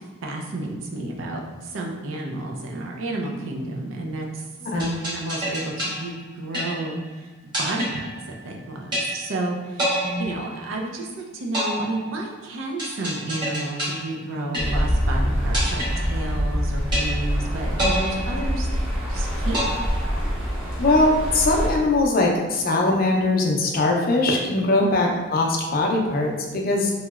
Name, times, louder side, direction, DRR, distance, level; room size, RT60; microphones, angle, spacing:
voice 1, 0.2-4.3 4.7-7.0 7.6-18.8 19.1-19.8 24.8-24.9, right 2 dB, 85° right, 0 dB, 0.5 m, -31 dB
voice 2, 4.6-4.9 10.0-10.2 20.8-26.9, left 2 dB, 50° left, 0 dB, 0.5 m, -21 dB
sound 1, 4.8-7.1 7.5-8.6 8.9-9.5 9.8-11.1 11.5-15.1 15.5-16.6 16.9-17.5 17.8-19.1 19.5-20.6, equal, 25° right, 1.1 m, -29 dB
sound 2, 14.6-21.7, equal, 5° right, 0.8 m, -25 dB
2.9 x 2.8 x 2.3 m, 1.2 s
head